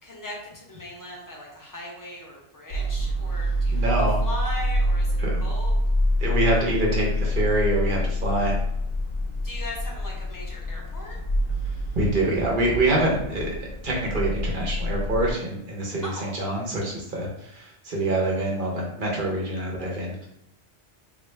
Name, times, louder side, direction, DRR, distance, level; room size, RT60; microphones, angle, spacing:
voice 1, 0.0-3.9 4.2-5.7 9.4-11.2 16.0-16.3, left 1 dB, 20° left, -3 dB, 0.7 m, -38 dB
sound 1, 2.7-15.3, left 1 dB, 65° left, 1.0 m, -26 dB
voice 2, 3.7-4.2 5.2-5.4 6.2-8.6 11.9-20.3, right 2 dB, 50° right, -2 dB, 1.0 m, -25 dB
3.1 x 2.5 x 3.2 m, 0.81 s
omnidirectional pair, 1.1 m